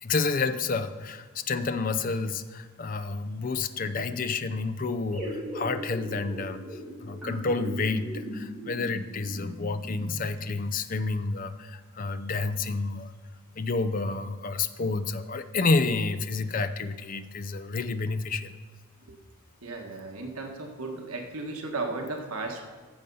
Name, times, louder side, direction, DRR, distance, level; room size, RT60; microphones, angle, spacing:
voice 1, 0.0-13.1 13.6-18.5, left 3 dB, 40° left, 11 dB, 0.5 m, -30 dB
sound 1, 5.1-10.6, equal, ahead, 3.6 m, -38 dB
voice 2, 19.6-22.6, right 3 dB, 80° right, 2 dB, 1.5 m, -35 dB
14.0 x 7.0 x 5.4 m, 1.4 s
head